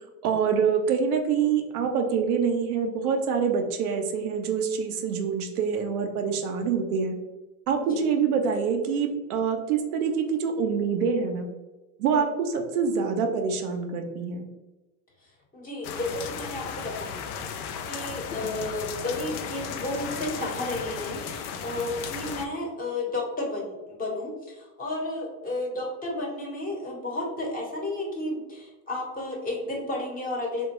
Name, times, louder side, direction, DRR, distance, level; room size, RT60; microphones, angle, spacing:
voice 1, 0.2-7.2 7.7-11.5 12.0-14.5, right 6 dB, 90° right, 4 dB, 0.7 m, -26 dB
voice 2, 15.5-30.7, left 2 dB, 20° left, -1 dB, 1.1 m, -32 dB
sound 1, 15.8-22.5, left 7 dB, 85° left, 0.5 m, -35 dB
3.5 x 2.2 x 2.9 m, 1.1 s
supercardioid pair, 100°, 43 cm